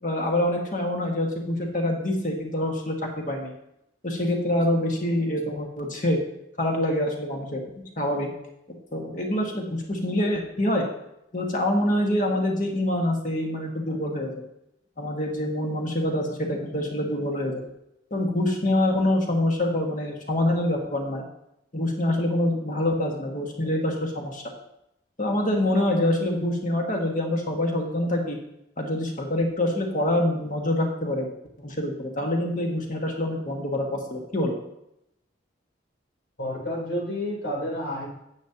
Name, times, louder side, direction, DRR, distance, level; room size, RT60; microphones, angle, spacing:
voice 1, 0.0-3.0 3.3-3.5 4.0-6.2 6.6-8.3 8.9-10.9 11.3-14.3 15.0-17.7 18.1-21.2 21.7-24.4 25.2-28.4 28.8-31.3 31.6-34.6, left 1 dB, 40° left, 1 dB, 1.7 m, -25 dB
voice 2, 36.4-38.1, left 1 dB, 75° left, -3 dB, 3.8 m, -30 dB
10.5 x 8.5 x 2.9 m, 0.81 s
head